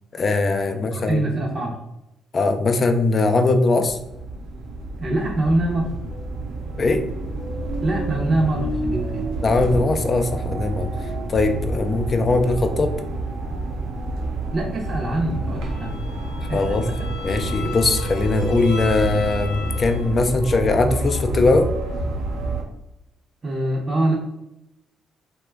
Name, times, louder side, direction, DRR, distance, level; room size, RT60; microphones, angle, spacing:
voice 1, 0.1-1.2 2.3-4.0 6.8-7.0 9.4-10.9 11.3-12.9 16.5-16.8 17.2-21.7, left 3 dB, 40° left, 7 dB, 0.4 m, -20 dB
voice 2, 0.7-1.8 5.0-5.9 7.8-9.2 14.1-14.2 14.5-16.0 16.5-17.0 23.4-24.1, right 1 dB, 40° right, -3 dB, 0.6 m, -24 dB
sound 1, 3.8-22.6, right 2 dB, 90° right, 0.6 m, -28 dB
Bowed string instrument, 15.6-20.3, left 6 dB, 80° left, 0.7 m, -37 dB
2.9 x 2.2 x 3.3 m, 0.89 s
cardioid pair, 90°, 0 cm